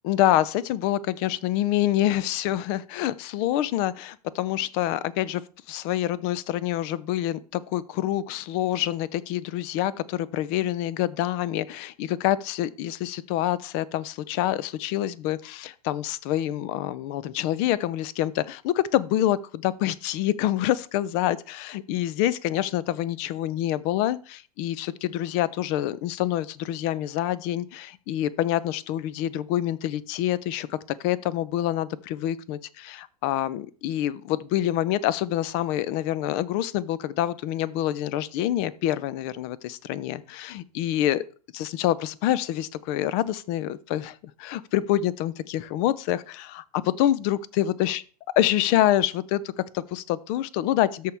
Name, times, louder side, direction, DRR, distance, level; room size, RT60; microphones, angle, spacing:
voice 1, 0.0-5.4 5.7-41.2 41.5-48.0 48.4-51.1, left 13 dB, 45° left, 0.6 m, -26 dB
13.5 x 4.6 x 3.4 m
hypercardioid pair, 105°, 21 cm